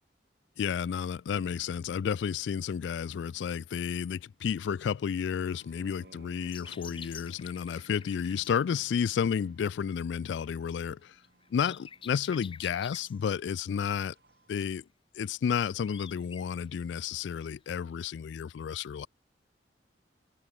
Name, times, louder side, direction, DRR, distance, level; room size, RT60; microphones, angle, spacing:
voice 1, 0.6-11.2 11.5-14.1 14.5-14.8 15.1-19.1, left 7 dB, 85° left, 0.3 m, -31 dB
sound 1, 5.4-14.7, right 2 dB, 60° right, 2.2 m, -60 dB
sound 2, 6.4-8.6 11.2-13.2 15.5-16.5 17.8-17.9, left 7 dB, 30° left, 0.9 m, -48 dB
head